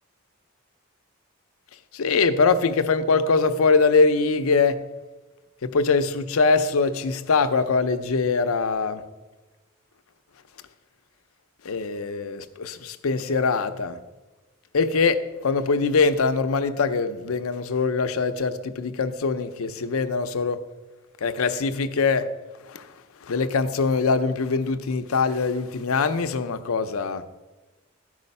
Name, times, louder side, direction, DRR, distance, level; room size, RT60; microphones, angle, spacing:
voice 1, 1.9-4.8 5.6-9.0 11.6-14.0 14.7-20.6 21.2-22.3 22.6-22.9 23.2-27.2, left 4 dB, 85° left, 0.5 m, -23 dB
12.0 x 4.9 x 5.4 m
head